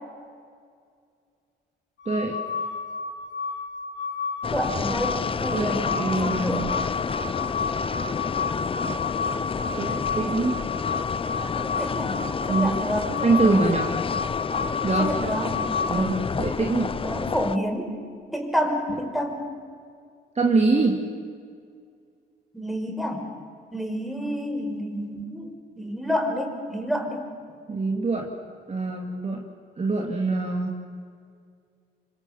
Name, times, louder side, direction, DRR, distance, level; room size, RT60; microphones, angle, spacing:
sound 1, 2.0-16.0, left 5 dB, 70° left, 6.5 m, -31 dB
voice 1, 2.1-2.4 5.5-6.8 9.8-10.6 12.5-12.8 13.2-13.9 14.8-15.1 15.9-16.1 16.4-16.9 20.3-21.0 27.7-28.3 28.7-29.4 29.8-30.8, right 3 dB, 35° right, 1 dB, 2.9 m, -24 dB
sound 2, 4.4-17.6, left 5 dB, 25° left, 0.7 m, -30 dB
voice 2, 4.5-6.8 11.5-12.2 12.5-13.7 15.0-15.5 15.9-16.2 17.0-17.9 18.3-19.5 22.5-23.2 23.7-27.3, equal, ahead, 2 dB, 5.4 m, -29 dB
27.0 x 25.5 x 7.4 m, 2.2 s
cardioid pair, 90°, 20 cm